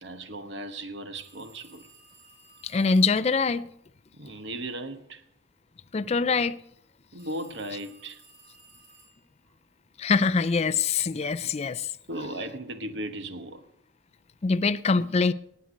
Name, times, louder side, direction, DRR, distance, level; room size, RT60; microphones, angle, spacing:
voice 1, 0.0-1.9 4.1-5.2 6.3-6.4 7.1-8.2 12.1-13.6, right 1 dB, 60° right, 1.1 m, -37 dB
sound 1, 1.2-3.3 7.2-9.4, right 3 dB, 85° right, 5.2 m, -56 dB
voice 2, 2.6-3.7 5.9-6.6 10.0-11.9 14.4-15.3, left 4 dB, 30° left, 0.4 m, -24 dB
18.0 x 8.1 x 5.2 m
head